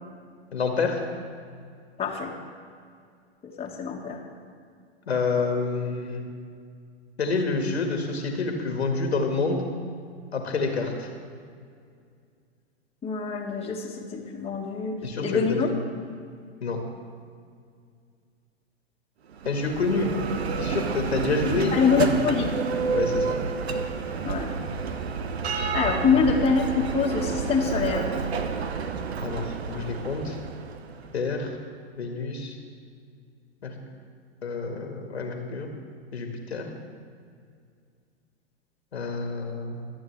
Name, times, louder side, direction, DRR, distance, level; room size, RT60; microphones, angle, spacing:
voice 1, 0.5-1.0 5.1-6.3 7.2-9.6 10.3-11.1 15.0-15.7 16.6-16.8 19.5-20.1 20.6-22.2 22.9-23.4 26.1-26.2 29.2-30.4 31.1-31.6 32.0-32.6 33.6-33.7 34.4-35.7 36.1-36.7 38.9-39.8, left 4 dB, 80° left, 3 dB, 1.9 m, -28 dB
voice 2, 2.0-2.3 3.4-4.2 13.0-15.7 21.7-22.5 24.2-24.5 25.7-28.2, left 5 dB, 20° left, -1 dB, 1.8 m, -25 dB
Bell, 19.3-31.1, right 5 dB, 75° right, 0.9 m, -30 dB
24.0 x 8.7 x 3.4 m, 2.2 s
figure-of-eight pair, 100°, 32 cm